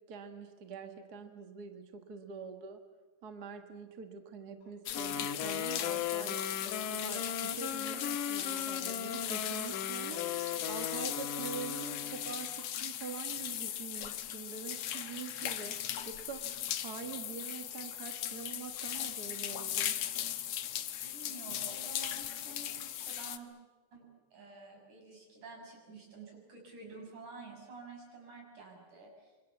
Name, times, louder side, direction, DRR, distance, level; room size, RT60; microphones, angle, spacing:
voice 1, 0.1-2.8 3.2-6.4 6.9-10.2 10.7-15.7 16.0-16.5 16.8-20.0, right 6 dB, 40° right, 6 dB, 1.8 m, -45 dB
Wind instrument woodwind instrument, 4.9-12.4, left 8 dB, 85° left, 2.9 m, -38 dB
sound 1, 4.9-23.4, left 11 dB, 65° left, 2.1 m, -38 dB
voice 2, 21.0-23.5 23.9-29.4, right 3 dB, 75° right, 1 dB, 8.1 m, -50 dB
26.5 x 24.5 x 7.3 m, 1.3 s
omnidirectional pair, 3.5 m